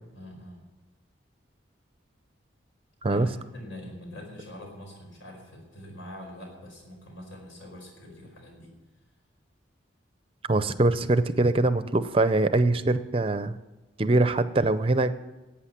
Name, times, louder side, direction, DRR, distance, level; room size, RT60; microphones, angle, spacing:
voice 1, 0.1-0.6 3.1-8.7, equal, 80° left, 1 dB, 4.9 m, -44 dB
voice 2, 10.5-13.6 14.0-15.1, right 2 dB, 30° right, 12 dB, 0.5 m, -23 dB
12.0 x 8.5 x 9.9 m, 1.1 s
head